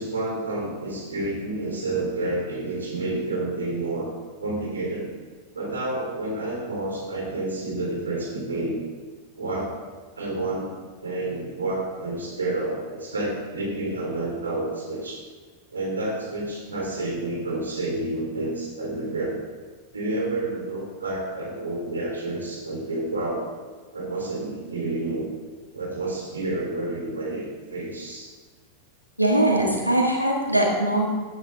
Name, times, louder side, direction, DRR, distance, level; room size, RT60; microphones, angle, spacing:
voice 1, 0.0-4.1 4.4-5.1 5.5-8.8 9.4-9.8 10.1-10.7 11.0-15.2 15.7-19.4 19.9-23.5 23.9-25.3 25.7-28.3, right 2 dB, 75° right, -2 dB, 3.5 m, -29 dB
voice 2, 29.2-31.1, right 1 dB, 90° left, -1 dB, 2.0 m, -21 dB
15.5 x 9.0 x 3.6 m, 1.4 s
figure-of-eight pair, 90°, 0 cm